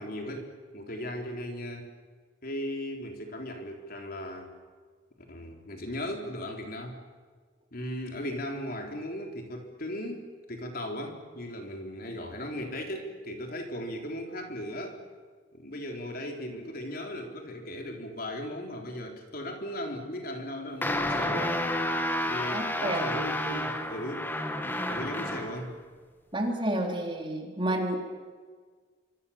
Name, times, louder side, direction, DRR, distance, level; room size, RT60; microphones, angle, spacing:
voice 1, 0.0-1.9 2.4-4.5 5.3-7.0 7.7-10.2 10.5-15.0 15.5-21.7 22.3-24.3 24.9-25.8, left 1 dB, 50° left, 3 dB, 3.9 m, -37 dB
sound 1, 20.8-25.6, left 1 dB, 10° left, 1.9 m, -30 dB
voice 2, 22.5-23.0 26.3-28.0, right 1 dB, 25° right, 2 dB, 3.8 m, -30 dB
27.0 x 25.0 x 7.3 m, 1.5 s
head